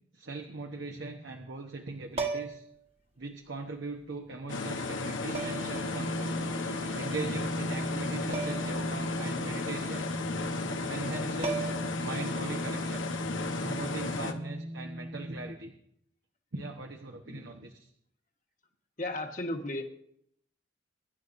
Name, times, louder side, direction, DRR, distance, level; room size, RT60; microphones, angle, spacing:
voice 1, 0.1-2.6 3.2-6.5 6.9-10.1 10.9-11.7 12.0-13.0 13.6-15.7 16.5-17.9, right 3 dB, 75° right, 3 dB, 1.2 m, -40 dB
sound 1, 2.1-2.7 4.1-4.2 5.3-5.8 8.3-8.8 9.1-9.2 11.0-11.1 11.4-12.0 14.0-14.2, right 4 dB, 30° right, 1.3 m, -35 dB
sound 2, 4.5-14.3, left 3 dB, 85° left, 1.1 m, -35 dB
sound 3, 5.2-15.6, equal, 15° right, 0.8 m, -38 dB
voice 2, 19.0-19.8, left 1 dB, 40° left, 4 dB, 1.5 m, -36 dB
23.5 x 11.5 x 2.7 m, 0.72 s
head